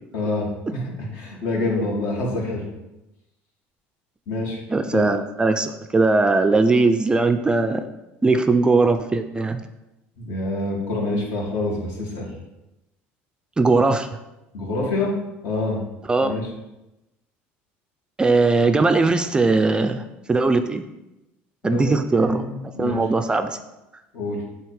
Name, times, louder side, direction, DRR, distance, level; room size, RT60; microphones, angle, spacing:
voice 1, 0.1-2.7 4.3-4.6 4.9-5.1 10.2-12.3 14.5-15.1 15.4-15.8 16.2-16.5 21.6-21.9 22.1-23.0 24.1-24.4, left 2 dB, 70° left, -2 dB, 2.0 m, -26 dB
voice 2, 4.7-7.8 8.2-9.6 13.6-14.1 16.1-16.3 18.2-20.0 20.3-20.8 21.6-22.4 22.8-23.6, right 3 dB, 15° right, 8 dB, 0.4 m, -19 dB
7.5 x 2.9 x 4.8 m, 0.96 s
supercardioid pair, 110°, 5 cm